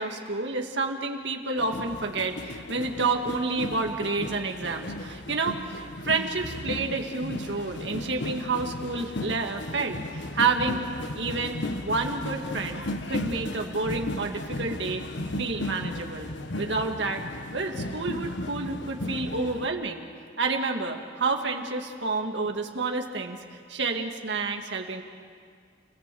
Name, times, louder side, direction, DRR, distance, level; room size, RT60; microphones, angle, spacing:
voice 1, 0.0-10.8 11.1-15.0 15.4-16.3 16.6-17.2 17.5-20.1 20.4-23.4 23.7-25.0, right 3 dB, 75° right, 3 dB, 2.1 m, -29 dB
sound 1, 1.6-19.7, left 1 dB, 80° left, 1.3 m, -35 dB
30.0 x 18.5 x 7.8 m, 2.1 s
head